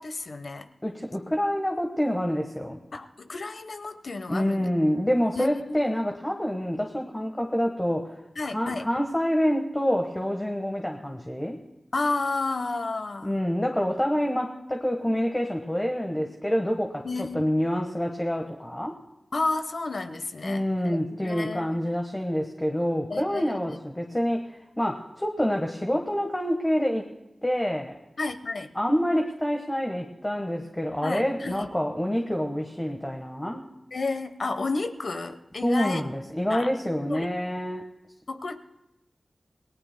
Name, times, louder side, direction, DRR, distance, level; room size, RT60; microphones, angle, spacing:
voice 1, 0.0-0.7 2.9-4.7 5.4-5.8 8.4-8.9 11.9-13.3 17.0-17.5 19.3-22.0 23.1-23.8 28.2-28.7 31.0-31.7 33.9-36.0 36.5-36.7 37.0-37.3 38.3-38.5, left 3 dB, 65° left, 8 dB, 1.0 m, -31 dB
voice 2, 0.8-2.8 4.3-8.1 8.4-11.6 13.2-19.0 20.4-24.4 24.8-27.0 27.4-27.9 28.7-33.6 35.6-37.8, equal, 15° left, 1 dB, 1.3 m, -27 dB
28.0 x 19.0 x 2.2 m, 0.93 s
wide cardioid pair, 95°, 0 cm